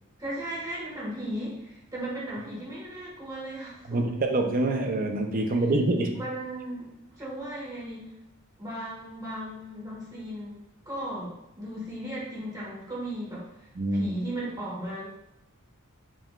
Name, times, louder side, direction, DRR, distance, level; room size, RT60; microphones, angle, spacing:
voice 1, 0.2-4.2 6.1-8.0 8.6-10.5 10.8-15.1, right 1 dB, 20° right, -7 dB, 1.5 m, -36 dB
voice 2, 3.9-6.2 13.8-14.1, right 2 dB, 40° right, 4 dB, 0.4 m, -26 dB
5.2 x 2.9 x 2.3 m, 0.88 s
head